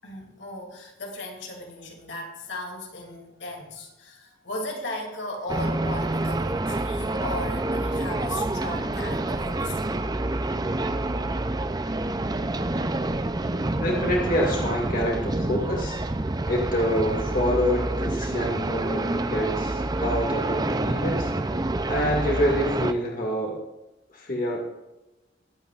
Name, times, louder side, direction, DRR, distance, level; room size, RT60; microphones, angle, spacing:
voice 1, 0.0-9.9, left 1 dB, 70° left, 0 dB, 2.7 m, -36 dB
sound 1, 5.5-22.9, right 2 dB, 20° right, 0.5 m, -27 dB
voice 2, 13.8-16.0 16.5-21.3 21.9-23.6 24.1-24.6, equal, 45° left, -1 dB, 2.1 m, -26 dB
21.5 x 8.9 x 2.5 m, 1.0 s
head